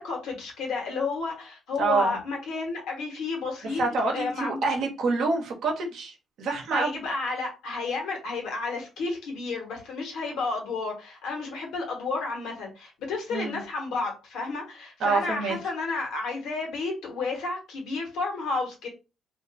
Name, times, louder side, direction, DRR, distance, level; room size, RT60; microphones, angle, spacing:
voice 1, 0.0-3.8 4.1-4.7 6.7-18.9, left 3 dB, 85° left, 1.0 m, -31 dB
voice 2, 1.8-2.2 3.8-6.9 13.3-13.6 15.0-15.6, right 3 dB, 75° right, 0.8 m, -27 dB
2.5 x 2.4 x 2.4 m
cardioid pair, 90°, 0 cm